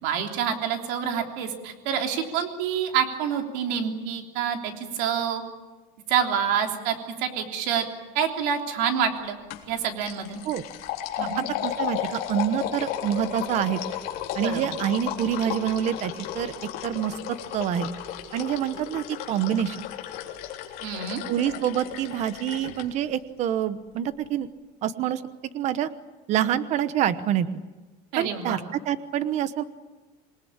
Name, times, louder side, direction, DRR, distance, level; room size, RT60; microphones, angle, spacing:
voice 1, 0.0-5.4 6.1-7.9 8.1-9.4 9.7-10.4 11.2-11.4 14.4-14.6 20.8-21.2 28.1-28.6, right 8 dB, 65° right, 3 dB, 3.4 m, -27 dB
sound 1, 9.5-9.7 10.0-22.8, left 11 dB, 55° left, 3.5 m, -34 dB
voice 2, 11.6-13.8 14.3-16.5 16.8-17.1 17.5-17.9 18.3-19.8 21.3-24.5 24.8-25.2 25.5-25.9 26.3-27.6 28.2-28.6 28.9-29.6, right 10 dB, 40° right, 13 dB, 1.0 m, -26 dB
27.0 x 20.0 x 8.8 m, 1.2 s
cardioid pair, 180°, 19 cm